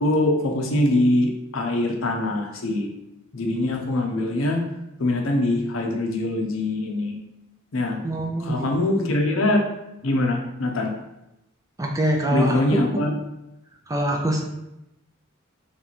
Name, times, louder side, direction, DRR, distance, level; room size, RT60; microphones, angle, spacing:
voice 1, 0.0-2.9 3.3-4.6 5.0-7.1 7.7-8.0 8.4-9.6 10.0-10.9 12.3-13.1, left 1 dB, 75° left, 2 dB, 0.7 m, -23 dB
voice 2, 8.0-8.7 11.8-12.6 12.9-13.0 13.9-14.4, right 1 dB, 15° right, 1 dB, 0.4 m, -24 dB
3.3 x 3.0 x 4.0 m, 0.88 s
head